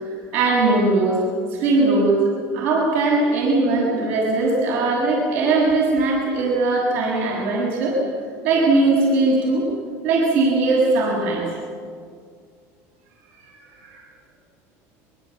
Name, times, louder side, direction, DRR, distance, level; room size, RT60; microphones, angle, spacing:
voice 1, 0.3-1.2 1.5-8.0 8.4-9.7 10.0-11.4 13.8-14.0, right 3 dB, 85° right, -3 dB, 6.9 m, -19 dB
24.5 x 23.5 x 8.3 m, 2.1 s
supercardioid pair, 135°, 7 cm